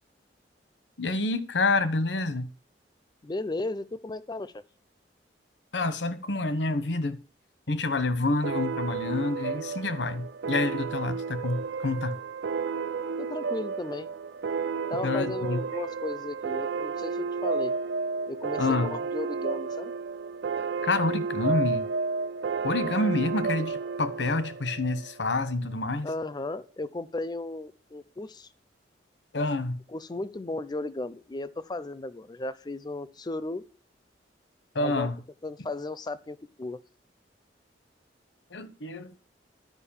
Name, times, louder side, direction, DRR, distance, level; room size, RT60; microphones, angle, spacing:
voice 1, 1.0-2.5 5.7-7.2 7.7-12.2 15.0-15.6 18.6-19.0 20.8-21.9 22.6-26.1 29.3-29.8 34.7-35.2 38.5-39.1, left 2 dB, 80° left, 1.1 m, -28 dB
voice 2, 3.2-4.6 13.2-14.1 14.9-17.7 18.3-19.9 26.0-28.5 29.9-33.6 34.8-35.1 35.4-36.8, left 2 dB, 25° left, 0.5 m, -35 dB
sound 1, 8.4-25.5, right 4 dB, 80° right, 0.4 m, -32 dB
11.0 x 5.2 x 7.2 m
head